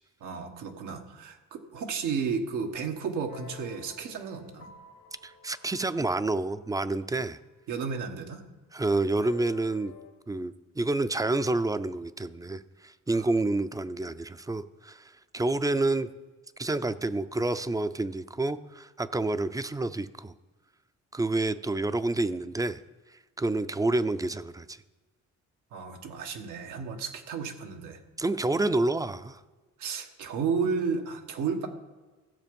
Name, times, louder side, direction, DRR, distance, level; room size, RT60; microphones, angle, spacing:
voice 1, 0.2-4.7 7.7-8.4 13.1-13.3 25.7-28.0 29.8-31.7, right 5 dB, 90° right, 4 dB, 1.4 m, -33 dB
sound 1, 3.3-7.9 9.2-10.1, left 4 dB, 80° left, 1.8 m, -52 dB
voice 2, 5.2-7.4 8.7-9.9 10.3-16.1 16.6-20.3 21.1-22.8 23.4-24.8 28.2-29.4, right 2 dB, 10° right, 13 dB, 0.5 m, -28 dB
15.0 x 6.9 x 5.3 m, 1.3 s
cardioid pair, 90°, 30 cm